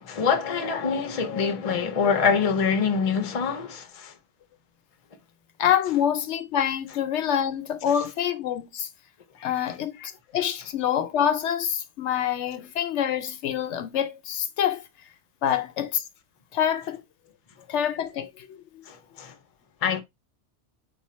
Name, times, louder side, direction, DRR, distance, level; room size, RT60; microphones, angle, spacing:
voice 1, 0.0-4.1 18.9-19.3 19.8-20.0, left 6 dB, 35° left, 0.7 m, -25 dB
voice 2, 5.6-8.9 9.4-14.8 15.4-16.0 16.5-17.0 17.7-18.6, left 9 dB, 80° left, 0.9 m, -26 dB
4.0 x 2.4 x 4.2 m
omnidirectional pair, 1.2 m